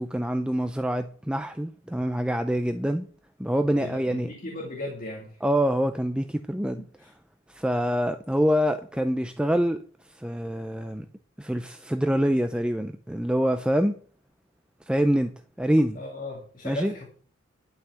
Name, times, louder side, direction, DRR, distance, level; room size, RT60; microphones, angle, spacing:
voice 1, 0.0-3.1 3.4-4.3 5.4-6.8 7.5-9.8 10.1-11.1 11.4-14.0 14.9-15.3 15.6-16.0 16.6-16.9, equal, 5° right, 0.5 m, -25 dB
voice 2, 3.8-5.4 7.0-7.1 15.9-17.0, left 2 dB, 40° left, 2.2 m, -37 dB
11.5 x 5.8 x 7.7 m
head